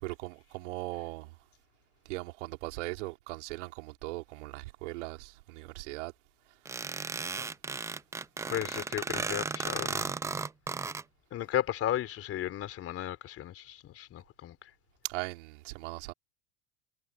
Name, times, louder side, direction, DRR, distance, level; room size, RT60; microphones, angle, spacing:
voice 1, 0.0-1.3 2.0-6.1 15.0-16.1, right 21 dB, 70° right, 3.0 m, -39 dB
sound 1, 6.7-11.0, right 4 dB, 10° right, 0.4 m, -35 dB
voice 2, 8.5-10.1 11.3-14.7, left 12 dB, 40° left, 3.4 m, -34 dB
hypercardioid pair, 110°, 37 cm